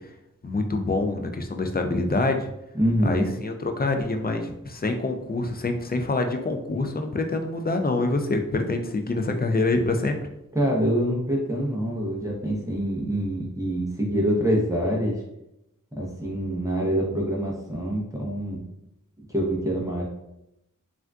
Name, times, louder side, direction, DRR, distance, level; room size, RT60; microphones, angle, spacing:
voice 1, 0.4-2.5 3.0-10.2, left 2 dB, 30° left, 5 dB, 0.4 m, -26 dB
voice 2, 2.7-3.3 10.5-15.2 15.9-18.6 19.3-20.0, equal, 10° right, -4 dB, 0.7 m, -25 dB
3.5 x 2.5 x 2.3 m, 0.85 s
wide cardioid pair, 60°, 33 cm